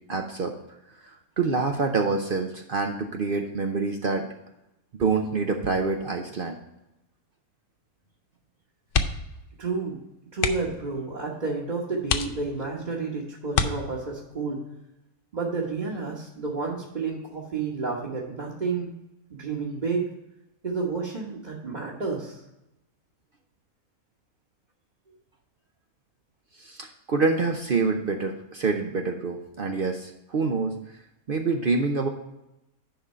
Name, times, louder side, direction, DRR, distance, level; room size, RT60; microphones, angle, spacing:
voice 1, 0.1-0.5 1.4-4.3 5.0-6.6 26.6-30.7 31.3-32.1, right 4 dB, 50° right, 4 dB, 0.7 m, -26 dB
sound 1, 8.9-9.4 9.7-9.9 10.3-10.8 11.5-11.6 12.0-12.8 13.5-14.3 15.8-16.2 16.5-16.6, left 6 dB, 60° left, 0.6 m, -27 dB
voice 2, 9.6-10.0 10.3-14.6 15.3-18.9 19.3-20.1 20.6-22.4 25.1-25.2, right 4 dB, 35° right, -3 dB, 1.3 m, -30 dB
10.0 x 3.7 x 5.4 m, 0.90 s
omnidirectional pair, 1.5 m